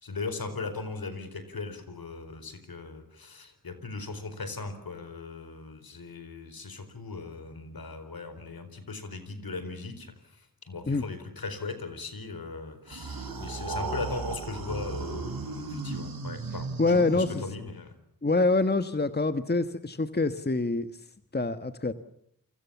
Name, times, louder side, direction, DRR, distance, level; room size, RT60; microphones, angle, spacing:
voice 1, 0.0-16.7 16.9-17.9, left 3 dB, 70° left, 10 dB, 4.7 m, -38 dB
sound 1, 12.9-17.7, right 3 dB, 70° right, 4.6 m, -35 dB
voice 2, 16.8-17.4 18.2-20.9 21.3-21.9, left 3 dB, 25° left, 10 dB, 1.4 m, -25 dB
29.0 x 24.5 x 7.2 m, 0.70 s
cardioid pair, 50°, 37 cm